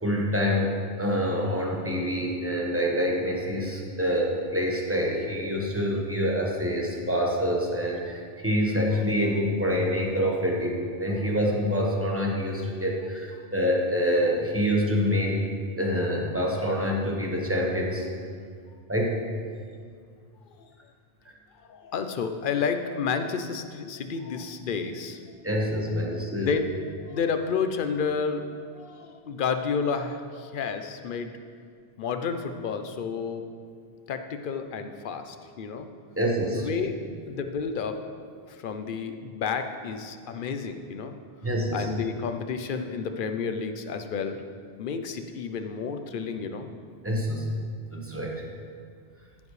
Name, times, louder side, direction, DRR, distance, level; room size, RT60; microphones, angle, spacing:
voice 1, 0.0-15.5 15.8-18.1 18.9-19.2 25.4-26.6 36.2-36.7 41.4-41.9 47.0-47.5 47.9-48.4, equal, 15° right, -2 dB, 1.2 m, -26 dB
voice 2, 21.7-25.2 26.0-31.3 32.0-33.4 34.1-35.9 36.5-37.0 37.3-38.0 38.5-41.1 41.7-44.4 44.8-46.7, left 5 dB, 55° left, 7 dB, 0.8 m, -31 dB
14.5 x 7.2 x 3.2 m, 2.2 s
omnidirectional pair, 1.1 m